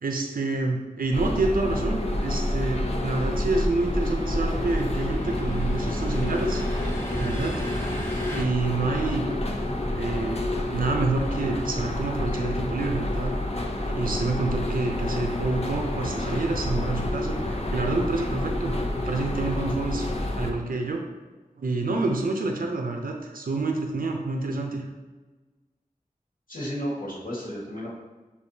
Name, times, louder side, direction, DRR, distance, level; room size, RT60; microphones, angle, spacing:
voice 1, 0.0-6.6 7.1-7.5 8.1-9.3 9.9-13.3 13.9-20.1 20.4-21.0 21.6-24.9, right 3 dB, 75° right, 2 dB, 0.5 m, -28 dB
sound 1, 1.1-20.5, left 1 dB, 45° left, 0.6 m, -28 dB
sound 2, 2.8-8.4, equal, 15° left, 0.9 m, -38 dB
voice 2, 26.5-27.9, equal, 65° left, -6 dB, 1.5 m, -33 dB
6.5 x 2.7 x 2.7 m, 1.2 s
wide cardioid pair, 40°, 15 cm